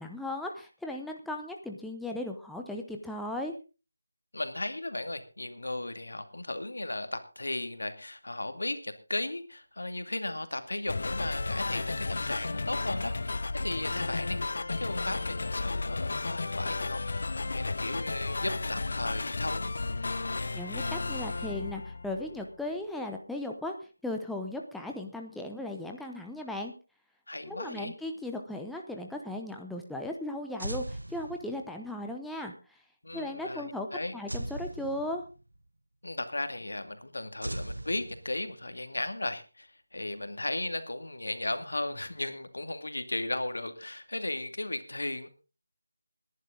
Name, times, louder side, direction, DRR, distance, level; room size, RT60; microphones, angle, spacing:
voice 1, 0.0-3.5 20.5-23.7 24.0-26.7 27.5-32.8 33.1-33.9 34.1-35.2, left 1 dB, ahead, 1 dB, 0.8 m, -37 dB
voice 2, 4.3-17.0 17.5-19.7 27.3-27.9 33.0-34.1 36.0-45.3, left 2 dB, 75° left, 9 dB, 2.3 m, -36 dB
sound 1, 10.9-22.5, left 3 dB, 55° left, 0.7 m, -33 dB
sound 2, 30.6-31.9 34.3-35.6 37.4-38.7, right 1 dB, 90° right, 1.0 m, -39 dB
19.5 x 11.0 x 3.9 m, 0.33 s
figure-of-eight pair, 165°, 0 cm